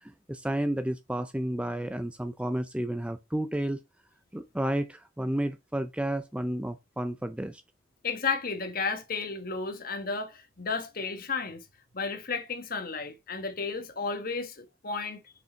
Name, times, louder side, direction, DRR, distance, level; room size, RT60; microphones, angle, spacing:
voice 1, 0.0-3.8 4.3-7.6, right 1 dB, 5° right, 0.4 m, -31 dB
voice 2, 8.0-11.6 11.9-15.2, left 4 dB, 45° left, 1.3 m, -33 dB
6.7 x 5.2 x 4.4 m
head